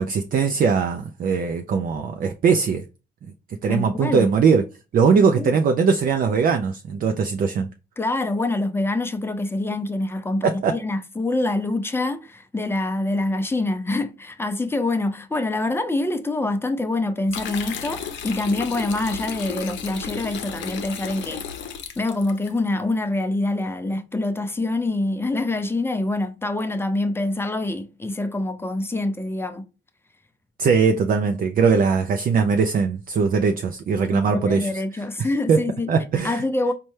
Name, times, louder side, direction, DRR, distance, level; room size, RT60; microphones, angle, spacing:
voice 1, 0.0-2.8 3.6-4.6 4.9-7.7 10.4-10.7 30.6-34.7 35.5-35.6 35.9-36.4, right 5 dB, 45° right, 0.4 m, -20 dB
voice 2, 3.7-4.3 5.1-5.6 8.0-21.4 22.0-29.6 34.1-35.9 36.2-36.7, left 2 dB, 10° left, 0.5 m, -25 dB
sound 1, 17.3-22.5, left 7 dB, 70° left, 0.6 m, -33 dB
4.1 x 2.2 x 3.2 m
cardioid pair, 90°, 20 cm